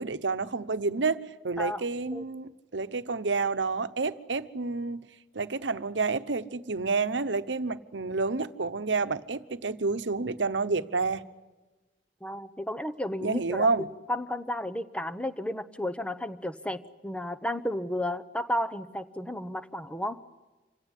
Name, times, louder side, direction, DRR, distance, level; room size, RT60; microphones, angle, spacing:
voice 1, 0.0-5.1 5.3-11.2 13.2-13.9, right 4 dB, 85° right, 1.0 m, -29 dB
voice 2, 12.2-20.2, left 1 dB, 5° left, 0.9 m, -33 dB
27.0 x 17.5 x 10.0 m
head